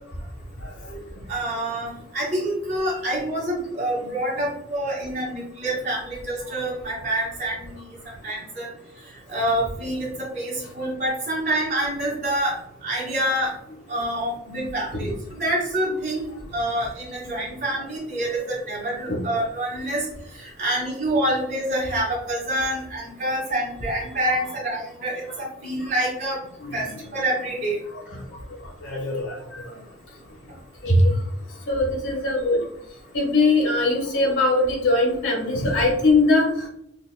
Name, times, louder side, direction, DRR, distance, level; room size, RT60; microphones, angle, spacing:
voice 1, 1.3-7.9 8.2-8.7 9.3-13.5 13.9-20.1 20.3-26.4 26.7-27.8, right 1 dB, 60° right, -7 dB, 1.3 m, -27 dB
voice 2, 26.6-26.9 28.1-28.2 28.8-29.6 30.8-31.1 31.7-32.6 33.1-36.7, left 2 dB, 80° left, -1 dB, 1.4 m, -21 dB
5.0 x 2.5 x 2.2 m, 0.75 s
head